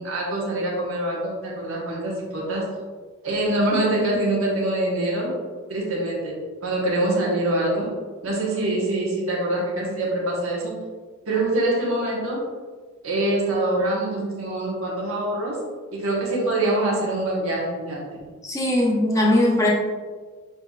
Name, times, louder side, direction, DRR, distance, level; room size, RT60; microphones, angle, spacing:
voice 1, 0.0-2.7 3.2-5.3 5.7-6.3 6.6-7.9 8.2-10.7 11.3-12.4 13.0-15.6 15.9-18.2, right 1 dB, 70° right, -4 dB, 1.2 m, -24 dB
voice 2, 18.4-19.7, left 1 dB, 15° left, -3 dB, 0.7 m, -19 dB
6.9 x 2.8 x 2.4 m, 1.5 s
head